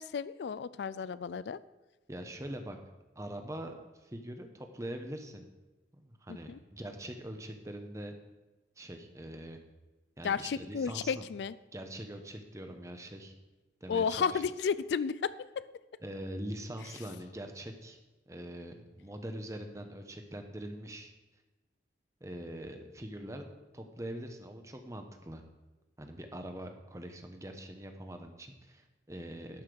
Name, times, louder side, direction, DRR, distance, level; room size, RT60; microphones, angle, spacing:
voice 1, 0.0-1.6 6.5-6.6 10.2-11.6 13.9-15.6, left 6 dB, 75° left, 17 dB, 0.4 m, -32 dB
voice 2, 2.1-2.8 3.2-5.5 5.9-8.1 8.8-9.6 10.2-11.3 11.7-13.3 13.8-14.4 16.0-18.0 18.3-21.1 22.2-23.4 23.7-25.4 26.0-29.6, right 1 dB, 15° right, 5 dB, 1.0 m, -43 dB
11.5 x 5.8 x 6.5 m, 1.1 s
head